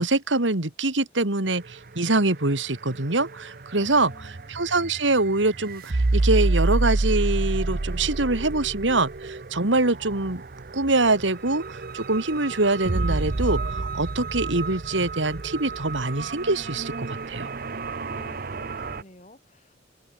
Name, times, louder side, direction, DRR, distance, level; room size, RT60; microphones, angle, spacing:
voice 1, 0.0-10.4 10.7-17.5, right 2 dB, 85° right, 2.5 m, -24 dB
sound 1, 1.5-19.0, right 2 dB, 50° right, 0.8 m, -29 dB
voice 2, 3.7-4.4 18.0-19.8, left 1 dB, 40° left, 6.4 m, -50 dB
open air
head